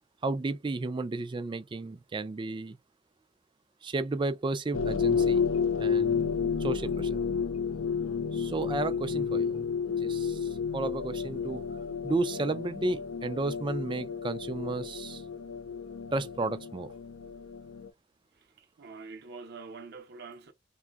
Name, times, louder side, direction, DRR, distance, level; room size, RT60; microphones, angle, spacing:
voice 1, 0.2-2.8 3.8-5.4 5.8-7.2 8.3-9.7 10.0-11.6 12.0-15.2 16.1-16.9, right 2 dB, 25° right, 0.3 m, -33 dB
sound 1, 4.7-17.9, left 6 dB, 85° left, 0.5 m, -31 dB
voice 2, 18.3-20.5, right 4 dB, 55° right, 0.6 m, -45 dB
3.6 x 2.2 x 2.3 m
head